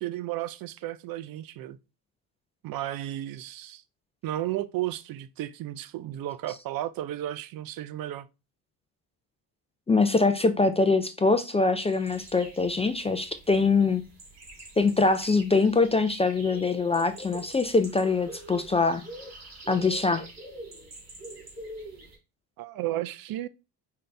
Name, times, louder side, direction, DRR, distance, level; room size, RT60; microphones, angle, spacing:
voice 1, 0.0-1.8 2.6-3.8 4.2-8.3 22.6-23.5, right 14 dB, 55° right, 0.5 m, -33 dB
voice 2, 9.9-14.0 14.8-19.0 19.7-20.2, left 3 dB, 15° left, 0.4 m, -23 dB
sound 1, 11.9-22.2, right 1 dB, 35° right, 2.6 m, -45 dB
5.2 x 2.8 x 3.3 m
supercardioid pair, 85°, 44 cm